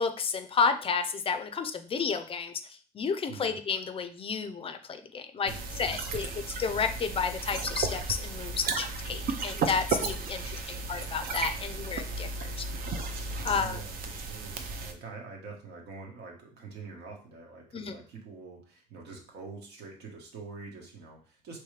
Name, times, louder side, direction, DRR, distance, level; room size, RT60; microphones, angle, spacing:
voice 1, 0.0-2.5 2.9-5.5 5.8-6.3 6.6-10.4 10.7-12.5 13.4-13.8 17.7-18.0, left 5 dB, 35° left, 8 dB, 0.4 m, -31 dB
voice 2, 3.3-3.6 5.4-6.6 10.0-11.0 13.3-21.6, right 4 dB, 75° right, 1 dB, 1.3 m, -46 dB
sound 1, 5.5-14.9, right 4 dB, 60° right, 0.6 m, -34 dB
4.6 x 3.1 x 3.3 m, 0.41 s
cardioid pair, 110°, 17 cm